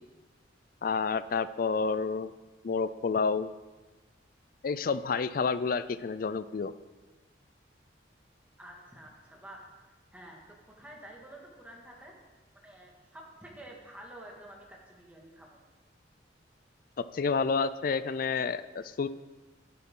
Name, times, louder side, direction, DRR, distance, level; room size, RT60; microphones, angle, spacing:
voice 1, 0.8-2.3 2.6-3.5 4.6-6.7 17.0-19.1, left 5 dB, 50° left, 15 dB, 0.4 m, -29 dB
voice 2, 8.6-9.7 10.1-10.4 10.8-12.1 12.6-15.6, right 1 dB, 10° right, -2 dB, 2.0 m, -49 dB
12.0 x 10.0 x 3.8 m, 1.2 s
head